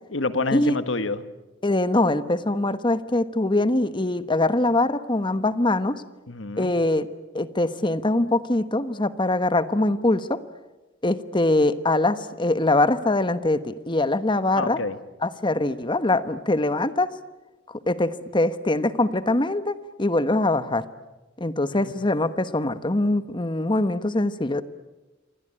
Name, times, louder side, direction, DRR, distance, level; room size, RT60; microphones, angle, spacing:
voice 1, 0.1-1.2 6.3-6.7 14.5-15.0 21.7-21.9, left 3 dB, 75° left, 12 dB, 1.5 m, -28 dB
voice 2, 1.6-6.0 6.6-7.1 7.3-10.4 11.0-14.8 15.2-17.1 17.9-20.8 21.4-24.6, left 2 dB, 25° left, 12 dB, 1.2 m, -23 dB
28.5 x 23.5 x 8.9 m, 1.1 s
head